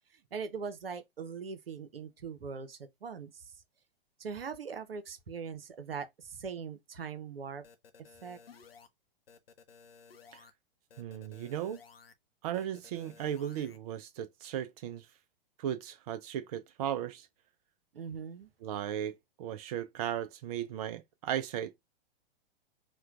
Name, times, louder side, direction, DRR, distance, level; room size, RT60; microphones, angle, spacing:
voice 1, 0.1-3.5 4.2-7.6 8.2-8.4 17.9-18.5, right 6 dB, 75° right, 0.8 m, -41 dB
sound 1, 7.6-8.9 9.3-10.5 10.9-12.1 12.5-13.8, left 6 dB, 80° left, 0.6 m, -56 dB
voice 2, 11.0-11.8 12.4-15.1 15.6-17.3 18.6-21.7, right 10 dB, 45° right, 0.4 m, -36 dB
4.3 x 2.2 x 2.3 m
figure-of-eight pair, 105°, 29 cm